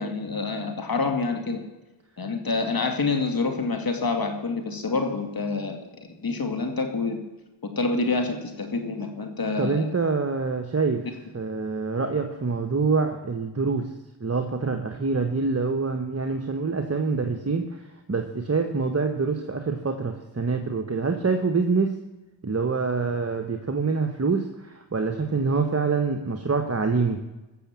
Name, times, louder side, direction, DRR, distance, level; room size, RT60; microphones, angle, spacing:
voice 1, 0.0-1.6 2.2-7.2 7.8-9.9, left 3 dB, 45° left, 5 dB, 2.5 m, -27 dB
voice 2, 9.6-11.0 11.3-13.9 14.2-17.8 18.1-21.9 22.4-27.2, right 4 dB, 30° right, 5 dB, 1.3 m, -25 dB
15.0 x 6.8 x 7.5 m, 1.1 s
cardioid pair, 50°, 49 cm